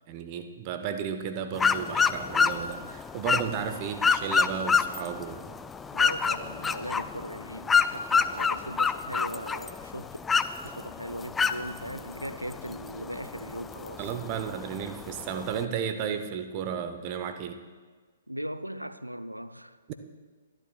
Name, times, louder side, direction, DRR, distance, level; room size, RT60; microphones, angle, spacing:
voice 1, 0.1-5.6 14.0-17.6 19.9-20.0, right 7 dB, 30° right, 0.9 m, -33 dB
sound 1, 1.5-15.6, left 5 dB, 10° left, 0.3 m, -28 dB
voice 2, 5.9-10.2 10.6-14.1 18.3-19.8, equal, 90° right, 0.5 m, -39 dB
24.0 x 11.5 x 2.3 m
figure-of-eight pair, 120°, 0 cm